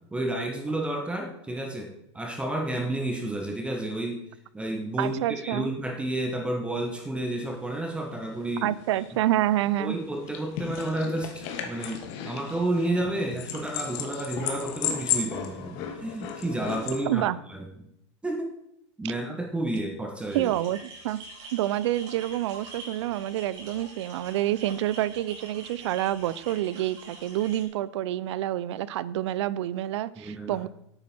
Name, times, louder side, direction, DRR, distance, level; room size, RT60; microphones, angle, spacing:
voice 1, 0.1-4.2 4.5-8.7 9.8-17.2 17.5-17.7 18.2-18.5 19.0-20.5 30.2-30.6, right 1 dB, 5° right, 3 dB, 1.1 m, -31 dB
voice 2, 5.0-5.7 8.6-10.0 17.1-17.4 19.0-19.1 20.3-21.2 21.5-30.7, right 13 dB, 70° right, 19 dB, 0.5 m, -28 dB
sound 1, 7.5-7.6 7.9-8.0 8.2-17.0, left 8 dB, 45° left, 1.6 m, -34 dB
sound 2, 20.3-27.6, right 3 dB, 45° right, 4.4 m, -46 dB
10.5 x 8.8 x 4.3 m, 0.78 s
supercardioid pair, 150°, 15 cm